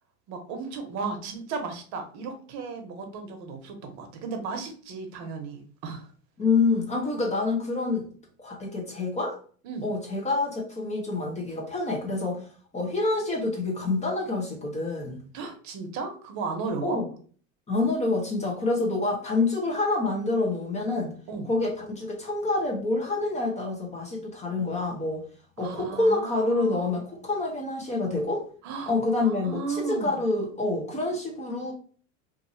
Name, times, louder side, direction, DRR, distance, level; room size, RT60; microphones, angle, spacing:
voice 1, 0.3-6.1 9.6-9.8 15.3-17.0 21.3-21.5 25.6-26.9 28.6-30.2, right 4 dB, 45° right, 5 dB, 0.9 m, -35 dB
voice 2, 6.4-8.1 8.4-9.4 9.8-12.5 12.7-15.2 16.8-17.1 17.7-21.1 21.4-25.2 25.6-28.4 28.9-31.7, left 3 dB, 20° left, -1 dB, 0.8 m, -27 dB
2.7 x 2.6 x 2.7 m, 0.43 s
hypercardioid pair, 105°, 38 cm